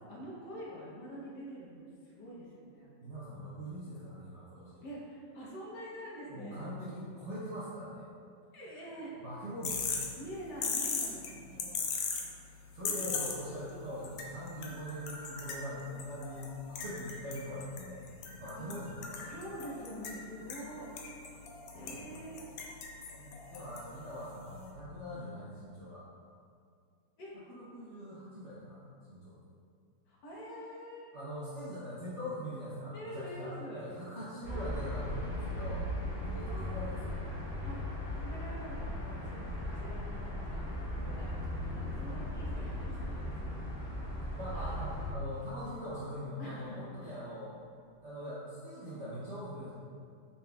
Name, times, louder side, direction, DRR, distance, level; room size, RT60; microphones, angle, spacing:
voice 1, 0.1-3.1 4.8-6.6 8.5-9.1 10.2-11.9 12.9-13.5 18.6-18.8 19.2-20.9 21.7-22.4 27.2-27.4 30.1-31.1 32.9-33.9 36.5-37.0 37.6-37.8 38.2-43.6 44.5-44.8 46.4-47.2, equal, 65° left, -6 dB, 1.5 m, -46 dB
voice 2, 3.0-4.9 6.3-8.1 9.2-10.2 12.7-18.0 18.3-19.3 23.1-26.1 27.5-29.4 31.1-35.9 36.2-37.2 44.2-47.5 48.0-49.7, equal, 60° right, -10 dB, 0.8 m, -42 dB
sound 1, 9.6-24.7, left 5 dB, 80° left, 0.8 m, -40 dB
sound 2, 34.4-45.1, left 1 dB, 20° left, 1.4 m, -37 dB
5.6 x 3.8 x 2.3 m, 2.3 s
omnidirectional pair, 2.0 m